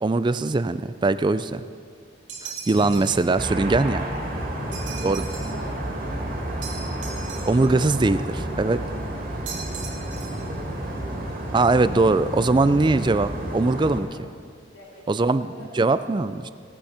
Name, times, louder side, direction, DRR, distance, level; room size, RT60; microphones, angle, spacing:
voice 1, 0.0-1.6 2.4-4.1 5.0-5.2 7.5-8.8 11.5-14.2 15.1-15.5 15.8-16.5, right 3 dB, 25° right, 13 dB, 0.4 m, -21 dB
sound 1, 2.3-3.3 4.7-5.6 6.6-7.8 9.5-10.5, right 6 dB, 75° right, 2.4 m, -38 dB
sound 2, 2.7-4.8, equal, 5° right, 1.7 m, -42 dB
sound 3, 3.4-14.0, right 1 dB, 50° right, 2.5 m, -31 dB
voice 2, 4.4-6.8 10.1-11.1 14.7-15.7, left 1 dB, 80° left, -5 dB, 3.2 m, -46 dB
17.5 x 10.0 x 5.7 m, 2.2 s
head